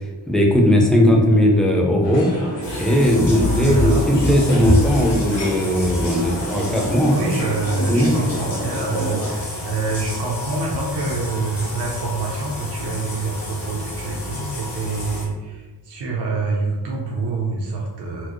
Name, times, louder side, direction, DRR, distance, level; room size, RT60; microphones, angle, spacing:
voice 1, 0.3-2.3 2.7-7.1 7.8-8.1, equal, ahead, -1 dB, 0.5 m, -17 dB
sound 1, 2.0-9.3, equal, 85° left, 1.1 m, -30 dB
sound 2, 2.6-15.2, left 1 dB, 55° left, 1.1 m, -28 dB
voice 2, 3.3-4.1 6.3-6.4 7.1-18.3, right 3 dB, 65° right, -2 dB, 0.7 m, -26 dB
4.4 x 2.0 x 2.9 m, 1.2 s
wide cardioid pair, 110°, 43 cm